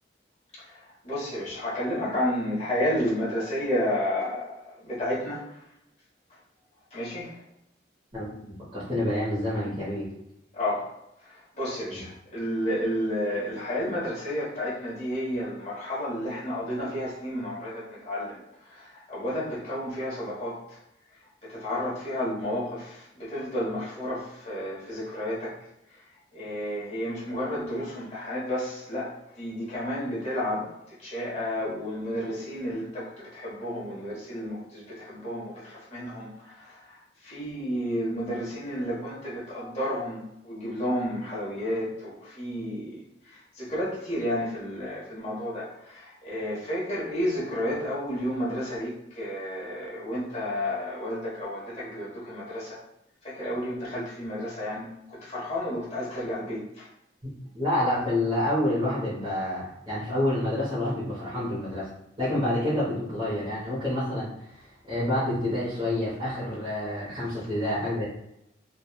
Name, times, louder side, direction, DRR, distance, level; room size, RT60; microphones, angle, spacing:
voice 1, 1.0-5.4 6.9-7.3 10.5-10.8 11.5-18.4 18.7-20.6 21.4-25.5 26.3-30.7 31.0-37.0 37.2-43.0 43.6-48.9 49.1-52.8 53.2-54.9 55.2-56.8, equal, 35° left, -9 dB, 1.1 m, -31 dB
voice 2, 8.7-10.1 11.9-12.0 57.5-61.9 62.2-64.6 64.9-68.0, left 1 dB, 25° right, -11 dB, 0.8 m, -28 dB
2.9 x 2.3 x 2.2 m, 0.82 s
head